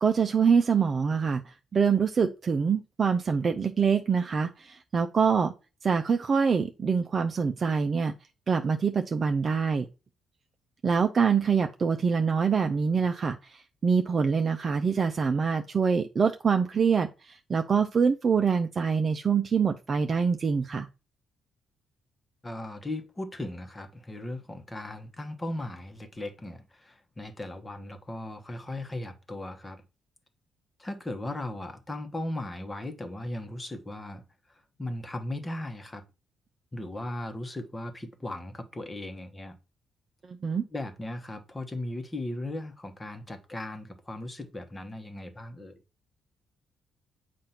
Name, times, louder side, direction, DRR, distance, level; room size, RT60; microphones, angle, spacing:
voice 1, 0.0-5.5 5.8-8.1 8.5-9.8 10.8-20.9 40.3-40.6, right 6 dB, 40° right, 0.5 m, -25 dB
voice 2, 22.4-29.8 30.8-34.2 34.5-36.0 36.7-39.5 40.7-45.8, left 1 dB, 20° left, 1.1 m, -37 dB
7.4 x 2.5 x 5.7 m
cardioid pair, 90°, 0 cm